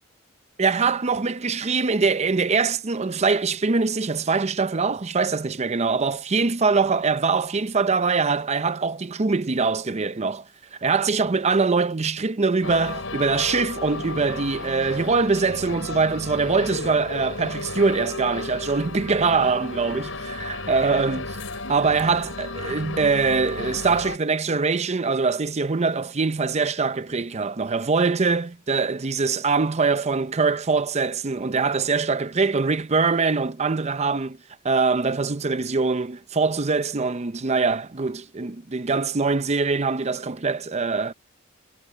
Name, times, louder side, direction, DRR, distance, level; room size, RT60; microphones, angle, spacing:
voice 1, 0.6-10.4 10.8-21.4 21.7-34.4 34.6-41.1, right 4 dB, 35° right, 0.6 m, -23 dB
sound 1, 12.6-24.2, left 3 dB, 75° left, 5.9 m, -34 dB
head